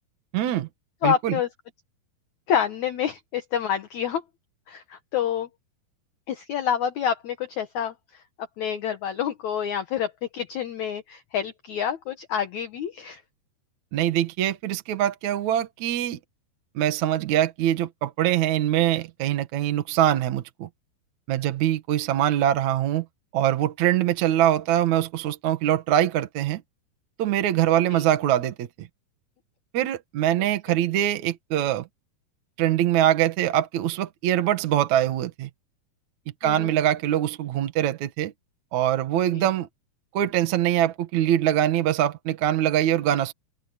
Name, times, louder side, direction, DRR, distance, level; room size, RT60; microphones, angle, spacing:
voice 1, 0.3-0.7 1.0-1.4 13.9-16.2 16.8-20.7 21.3-23.1 23.3-26.6 27.2-28.9 29.7-31.9 32.6-35.5 36.4-38.3 38.7-39.7 40.1-43.3, right 12 dB, 60° right, 2.2 m, -23 dB
voice 2, 1.0-1.5 2.5-4.2 4.7-5.5 6.3-8.2 8.6-13.2 27.9-28.0 36.4-36.8 39.3-39.5, left 9 dB, 60° left, 2.1 m, -28 dB
omnidirectional pair, 4.5 m